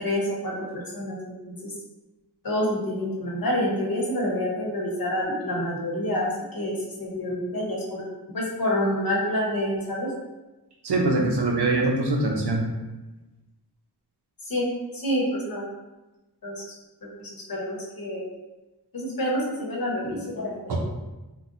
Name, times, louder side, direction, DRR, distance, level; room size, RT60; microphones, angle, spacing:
voice 1, 0.0-1.7 2.4-8.0 8.3-10.1 14.5-14.7 14.9-15.6 16.4-16.6 17.0-18.2 18.9-20.8, left 1 dB, 60° left, -3 dB, 0.9 m, -28 dB
voice 2, 10.8-12.6 20.7-20.8, right 2 dB, 75° right, 0 dB, 0.7 m, -23 dB
3.9 x 2.1 x 2.5 m, 1.1 s
wide cardioid pair, 95°, 40 cm